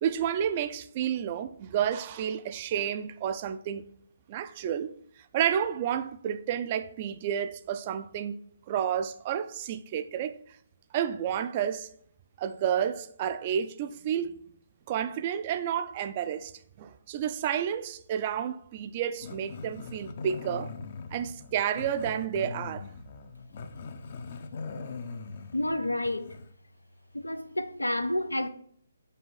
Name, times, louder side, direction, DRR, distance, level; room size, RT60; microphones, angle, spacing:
voice 1, 0.0-3.9 4.3-4.9 5.3-8.4 8.7-10.4 10.9-11.9 12.4-14.4 14.9-16.5 16.8-20.7 21.1-22.8, right 9 dB, 35° right, 0.4 m, -30 dB
Growling, 19.2-26.5, left 4 dB, 45° left, 0.5 m, -41 dB
voice 2, 25.5-26.4 27.1-28.5, left 1 dB, 90° left, 0.5 m, -30 dB
5.5 x 4.5 x 4.0 m
figure-of-eight pair, 140°, 0 cm